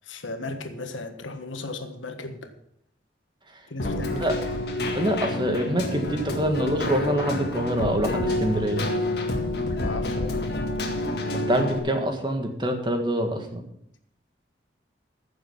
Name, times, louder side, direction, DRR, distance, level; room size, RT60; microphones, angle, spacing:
voice 1, 0.1-2.5 3.7-4.4 9.8-10.4, left 2 dB, 90° left, 7 dB, 1.5 m, -36 dB
Keyboard (musical), 3.8-11.8, left 2 dB, 55° left, 2.0 m, -28 dB
voice 2, 4.9-8.8 11.3-13.6, equal, 25° right, 4 dB, 1.6 m, -25 dB
15.0 x 7.0 x 5.8 m, 0.72 s
head